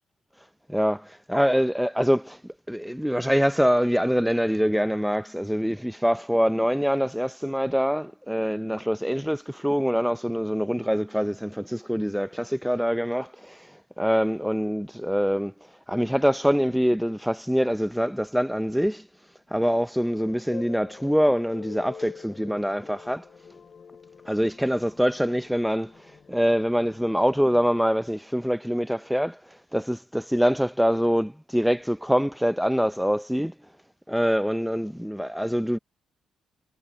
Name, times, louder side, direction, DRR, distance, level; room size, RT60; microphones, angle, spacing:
voice 1, 0.7-2.4 2.7-15.5 15.9-19.1 19.5-23.2 24.3-25.9 26.3-29.4 29.7-33.5 34.1-35.8, equal, ahead, 0.5 m, -24 dB
sound 1, 20.1-27.7, left 6 dB, 45° left, 3.5 m, -46 dB
cardioid pair, 90°, 0 cm